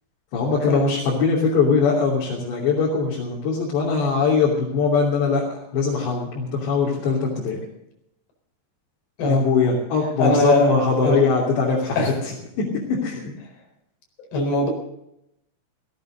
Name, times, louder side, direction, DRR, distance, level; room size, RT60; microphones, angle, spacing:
voice 1, 0.3-7.6 9.3-13.3, left 5 dB, 85° left, -4 dB, 5.2 m, -21 dB
voice 2, 10.2-10.7 11.0-11.2 12.0-12.1 14.3-14.7, left 1 dB, 70° left, 2 dB, 6.4 m, -20 dB
17.0 x 17.0 x 3.9 m, 0.79 s
omnidirectional pair, 4.8 m